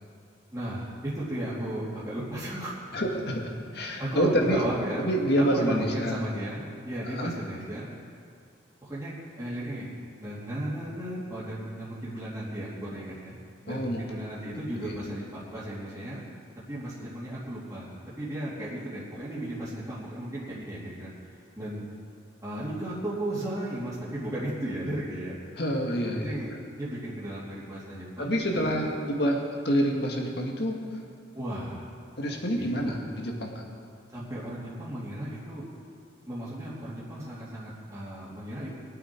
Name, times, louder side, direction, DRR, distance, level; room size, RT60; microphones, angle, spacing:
voice 1, 0.5-2.7 3.7-5.0 5.5-7.9 8.8-9.9 10.2-13.3 13.6-16.2 16.7-17.9 18.2-21.1 21.6-21.8 22.4-25.4 26.0-28.3 28.7-28.9 31.3-31.8 32.6-33.0 34.1-35.6 36.3-38.7, right 1 dB, 15° right, -12 dB, 2.9 m, -35 dB
voice 2, 2.9-4.6 5.0-6.2 7.1-7.4 13.7-14.0 14.8-15.0 25.6-26.3 28.2-30.8 32.2-33.7, equal, 60° left, 1 dB, 2.0 m, -27 dB
23.5 x 8.5 x 4.6 m, 2.2 s
head